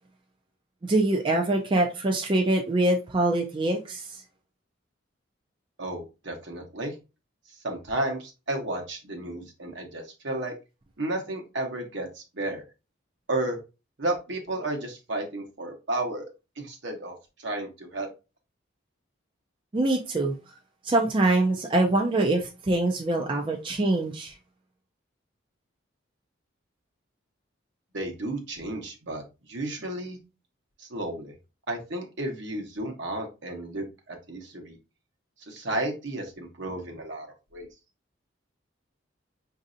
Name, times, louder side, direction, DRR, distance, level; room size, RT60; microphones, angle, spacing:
voice 1, 0.8-4.2 19.7-20.3 20.8-24.3, right 2 dB, 25° right, 0.4 m, -24 dB
voice 2, 5.8-6.9 7.6-10.5 11.0-12.6 13.3-13.6 14.0-16.3 16.6-18.1 27.9-29.2 29.5-30.2 30.8-31.3 31.7-34.8 35.5-37.3 37.5-37.7, right 2 dB, 70° right, 1.0 m, -32 dB
5.1 x 2.7 x 2.5 m
head